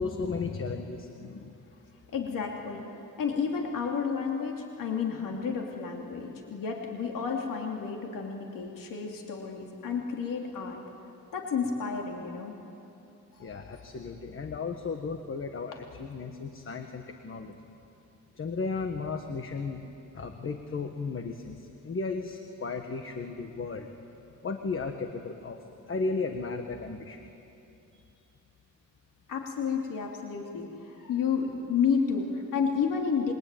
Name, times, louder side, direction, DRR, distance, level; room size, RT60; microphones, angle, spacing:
voice 1, 0.0-1.6 13.4-17.5 18.4-19.8 20.1-23.9 24.4-25.6 25.9-27.2, left 4 dB, 40° left, 6 dB, 1.4 m, -35 dB
voice 2, 2.1-2.8 3.2-10.8 11.3-12.5 13.3-13.9 29.3-33.3, left 6 dB, 85° left, 0 dB, 2.9 m, -31 dB
27.5 x 23.5 x 9.2 m, 2.8 s
wide cardioid pair, 155°, 32 cm